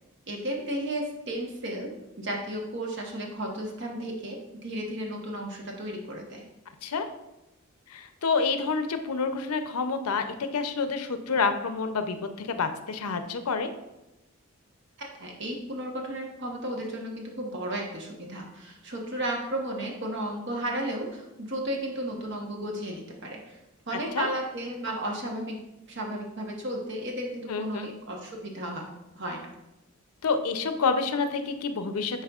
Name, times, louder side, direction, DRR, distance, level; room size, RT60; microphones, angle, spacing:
voice 1, 0.3-6.5 15.0-23.6 23.9-25.6 25.9-28.8 29.1-29.5, right 1 dB, 55° right, 0 dB, 1.1 m, -34 dB
voice 2, 7.9-13.7 23.9-24.3 27.5-27.9 30.2-32.2, left 4 dB, 85° left, 8 dB, 0.6 m, -28 dB
9.9 x 4.1 x 2.4 m, 0.96 s
head